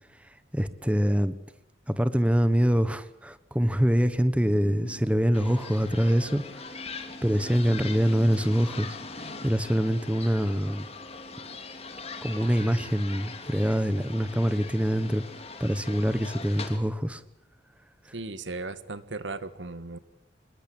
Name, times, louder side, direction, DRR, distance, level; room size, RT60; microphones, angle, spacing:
voice 1, 0.5-1.3 1.9-6.4 7.2-10.9 12.2-15.2 15.6-17.2, equal, 5° right, 13 dB, 1.2 m, -25 dB
sound 1, 3.9-7.5, left 1 dB, 70° left, 2.2 m, -50 dB
sound 2, 5.3-16.8, left 3 dB, 35° left, 2.9 m, -41 dB
voice 2, 18.1-20.0, right 3 dB, 85° right, 14 dB, 1.7 m, -36 dB
25.5 x 21.0 x 8.7 m, 0.83 s
head